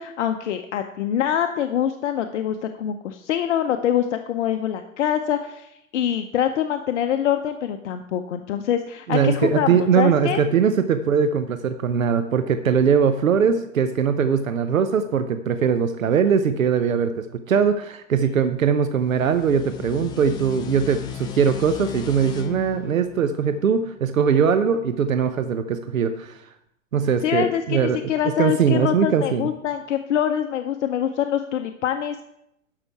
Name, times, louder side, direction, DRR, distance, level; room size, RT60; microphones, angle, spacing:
voice 1, 0.0-10.4 27.2-32.2, left 10 dB, 65° left, 7 dB, 0.7 m, -24 dB
voice 2, 9.1-26.4 26.9-29.4, right 7 dB, 85° right, 10 dB, 0.6 m, -21 dB
sound 1, 19.0-24.3, left 9 dB, 10° left, 0.3 m, -36 dB
11.5 x 5.8 x 4.5 m, 0.79 s
hypercardioid pair, 105°, 39 cm